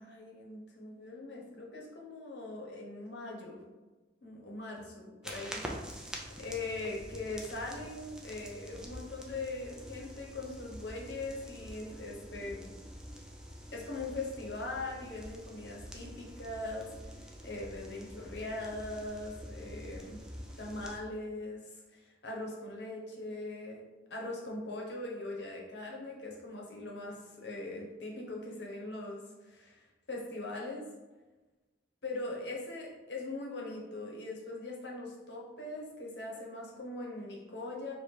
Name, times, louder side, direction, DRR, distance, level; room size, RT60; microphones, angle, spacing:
voice 1, 0.0-3.6 4.2-5.6 6.4-12.7 13.7-16.9 17.4-20.2 20.6-23.8 24.1-30.8 32.0-37.9, left 2 dB, 70° left, -2 dB, 1.0 m, -41 dB
sound 1, 5.2-21.0, equal, 5° right, 0.5 m, -46 dB
3.2 x 2.8 x 4.6 m, 1.2 s
head